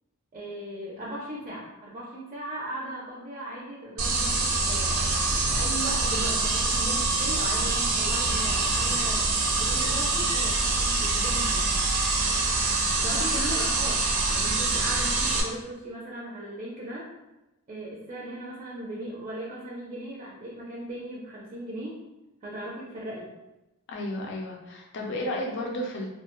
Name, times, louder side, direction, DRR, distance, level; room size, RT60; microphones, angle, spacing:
voice 1, 0.3-5.1 5.5-11.7 13.0-14.0 14.3-17.0 17.7-22.0 22.4-23.3, right 1 dB, 30° right, -4 dB, 0.4 m, -37 dB
sound 1, 4.0-15.4, right 3 dB, 80° right, 0.5 m, -25 dB
sound 2, 5.1-10.1, equal, ahead, 0.7 m, -42 dB
voice 2, 23.9-26.1, left 1 dB, 55° left, -1 dB, 0.5 m, -33 dB
2.3 x 2.1 x 2.9 m, 0.98 s
head